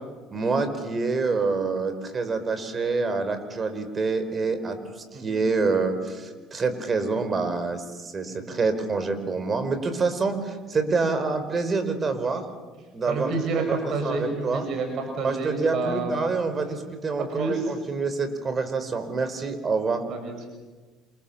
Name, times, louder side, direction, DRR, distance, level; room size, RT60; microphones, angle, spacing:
voice 1, 0.3-4.8 5.2-12.4 12.9-14.7 15.2-20.0, right 4 dB, 30° right, 9 dB, 4.6 m, -27 dB
voice 2, 13.1-14.2 14.5-16.1 17.2-17.7 20.1-20.5, right 3 dB, 55° right, 4 dB, 6.3 m, -29 dB
28.5 x 28.0 x 7.3 m, 1.3 s
cardioid pair, 110°, 0 cm